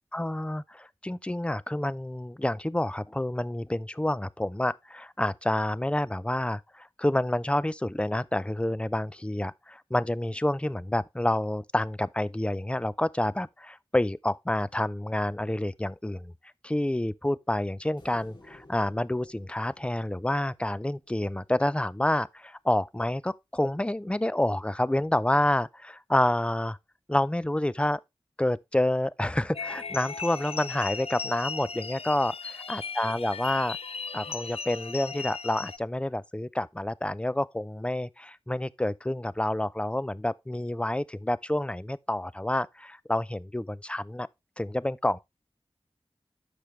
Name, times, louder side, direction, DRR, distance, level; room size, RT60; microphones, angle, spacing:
voice 1, 0.1-16.3 16.6-26.8 27.1-28.0 28.4-33.8 34.1-44.3 44.6-45.2, left 1 dB, 10° left, 0.5 m, -28 dB
sound 1, 18.0-21.4, left 2 dB, 55° left, 3.0 m, -56 dB
sound 2, 29.5-35.8, left 5 dB, 75° left, 0.5 m, -37 dB
12.5 x 5.0 x 3.2 m
wide cardioid pair, 50°, 10 cm